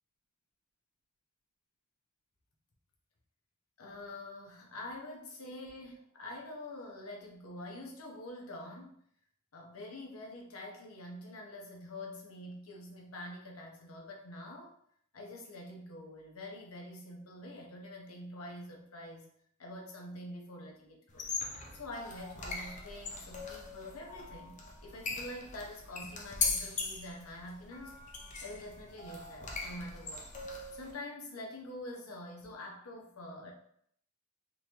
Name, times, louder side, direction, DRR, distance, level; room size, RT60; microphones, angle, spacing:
voice 1, 3.8-9.0 9.5-14.7 15.1-19.3 19.6-21.3 21.7-27.9 28.4-30.3 30.7-33.5, left 1 dB, 80° left, 0 dB, 0.9 m, -46 dB
sound 1, 21.1-30.9, left 4 dB, 35° left, 0.7 m, -40 dB
3.8 x 3.1 x 2.9 m, 0.66 s
head